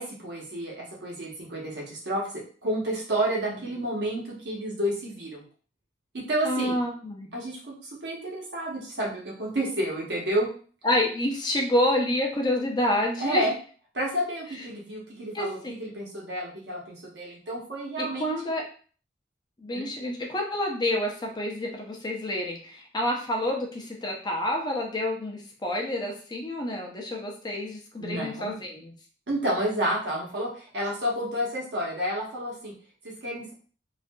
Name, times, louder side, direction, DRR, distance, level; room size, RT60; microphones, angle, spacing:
voice 1, 0.0-5.4 6.1-6.8 7.3-10.5 13.2-13.5 13.9-18.3 19.7-19.9 28.0-28.5 29.3-32.7 33.2-33.5, right 1 dB, 70° right, -3 dB, 0.9 m, -30 dB
voice 2, 6.4-7.3 10.8-13.5 15.3-15.5 18.0-18.7 19.6-28.9, left 1 dB, 25° left, 0 dB, 0.5 m, -28 dB
2.6 x 2.4 x 2.2 m, 0.42 s
head